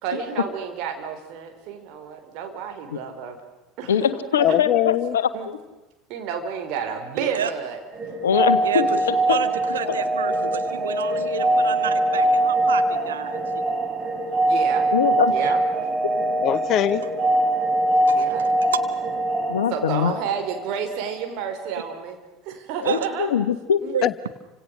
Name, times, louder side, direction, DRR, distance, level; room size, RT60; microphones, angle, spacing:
voice 1, 0.0-3.4 3.8-4.6 5.3-5.5 6.1-7.8 14.5-14.9 15.3-15.6 18.1-18.5 19.7-22.2 22.4-23.3 23.8-24.0, right 7 dB, 50° right, 5 dB, 4.6 m, -30 dB
voice 2, 3.9-5.6 8.2-9.4 14.9-15.3 19.5-20.1 22.8-23.8, left 8 dB, 70° left, 12 dB, 1.4 m, -23 dB
voice 3, 4.4-5.2 16.4-17.0 24.0-24.3, left 12 dB, 45° left, 17 dB, 1.0 m, -22 dB
voice 4, 7.1-7.5 8.6-9.0 9.3-13.4 18.1-18.3 22.8-23.1 23.9-24.0, right 8 dB, 75° right, 9 dB, 1.6 m, -29 dB
sound 1, 7.9-20.7, right 1 dB, 30° right, 4.6 m, -23 dB
29.5 x 26.0 x 6.6 m, 1.1 s
figure-of-eight pair, 70°, 0 cm